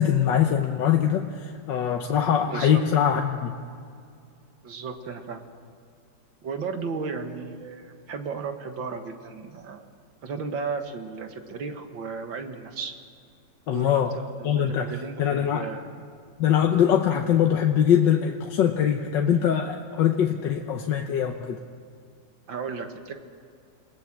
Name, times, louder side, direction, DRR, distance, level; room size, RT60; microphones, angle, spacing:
voice 1, 0.0-3.6 13.7-14.2 14.4-14.9 15.2-15.7 16.4-21.6, left 9 dB, 75° left, 3 dB, 1.6 m, -22 dB
voice 2, 2.4-2.8 4.6-5.5 6.4-9.9 10.2-12.9 13.7-16.0 22.5-23.1, right 5 dB, 80° right, 6 dB, 2.4 m, -34 dB
28.0 x 18.0 x 7.5 m, 2.3 s
omnidirectional pair, 2.0 m